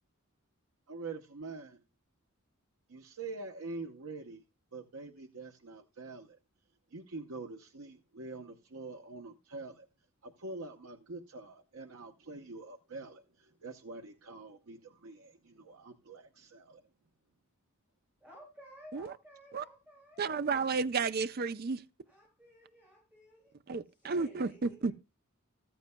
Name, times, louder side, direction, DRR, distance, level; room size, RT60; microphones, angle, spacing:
voice 1, 0.9-1.8 2.9-4.4 4.7-6.4 6.9-9.9 10.2-16.8, right 3 dB, 85° right, 0.8 m, -45 dB
voice 2, 18.2-20.3 22.0-23.5 23.8-24.9, equal, 10° right, 7.1 m, -55 dB
voice 3, 20.2-21.8 23.7-24.5 24.8-24.9, right 5 dB, 45° right, 0.5 m, -32 dB
15.0 x 14.0 x 2.2 m
head